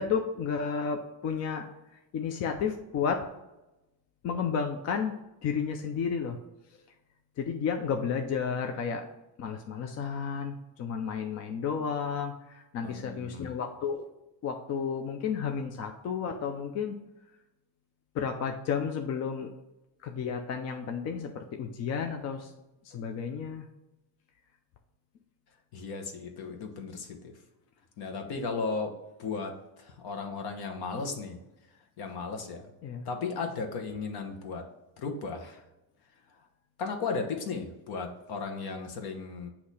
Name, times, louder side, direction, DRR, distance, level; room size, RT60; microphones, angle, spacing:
voice 1, 0.0-1.7 1.9-3.2 4.2-5.1 5.4-6.4 7.4-9.1 9.4-14.0 14.4-17.0 18.1-19.5 20.0-22.5 22.8-23.7 32.8-33.1, left 6 dB, 40° left, 4 dB, 0.4 m, -32 dB
voice 2, 12.8-13.5 25.7-27.3 28.0-28.9 29.2-29.5 29.8-31.4 32.0-32.7 33.0-34.6 35.0-35.6 36.8-39.5, left 4 dB, 60° left, 4 dB, 1.1 m, -35 dB
8.3 x 2.8 x 4.1 m, 0.98 s
cardioid pair, 180°, 42 cm